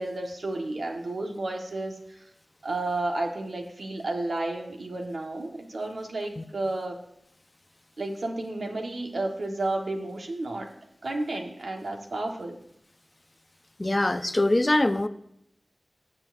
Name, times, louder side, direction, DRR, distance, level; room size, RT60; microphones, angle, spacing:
voice 1, 0.0-2.2 2.6-7.0 8.0-10.7 11.0-12.6, right 2 dB, 80° right, 2 dB, 1.3 m, -32 dB
voice 2, 13.8-15.1, left 1 dB, 25° left, 11 dB, 0.5 m, -23 dB
18.5 x 7.3 x 2.6 m, 0.76 s
wide cardioid pair, 85°, 0 cm